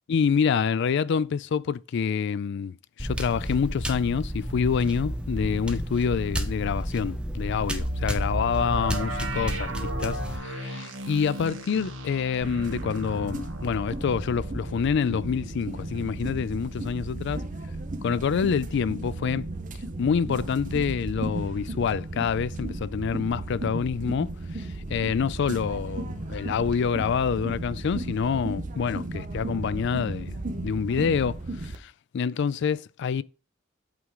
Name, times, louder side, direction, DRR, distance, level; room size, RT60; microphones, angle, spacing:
voice 1, 0.1-17.4 18.0-19.5 20.0-33.2, left 6 dB, 60° left, 0.3 m, -27 dB
sound 1, 3.0-10.4, equal, 5° right, 0.8 m, -31 dB
sound 2, 7.8-17.5 17.9-18.0 18.5-18.7, right 1 dB, 65° right, 1.6 m, -37 dB
sound 3, 12.4-31.8, right 2 dB, 40° right, 0.9 m, -35 dB
8.3 x 3.7 x 4.8 m
head